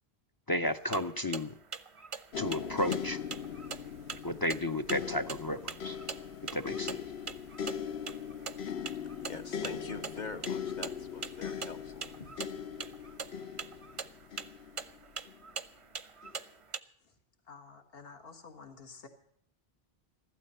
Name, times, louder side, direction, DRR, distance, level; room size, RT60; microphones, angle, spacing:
voice 1, 0.5-1.6 2.4-3.2 4.2-6.0 6.5-7.0, left 1 dB, 30° left, 12 dB, 0.5 m, -33 dB
sound 1, 0.7-16.8, right 6 dB, 40° right, 0.6 m, -44 dB
sound 2, 2.3-15.4 16.2-16.4, left 8 dB, 85° left, 1.1 m, -40 dB
voice 2, 8.5-12.3, left 4 dB, 45° left, 7 dB, 1.2 m, -45 dB
voice 3, 17.5-19.1, left 5 dB, 70° left, 6 dB, 1.7 m, -50 dB
15.0 x 12.5 x 5.5 m, 0.70 s
omnidirectional pair, 1.0 m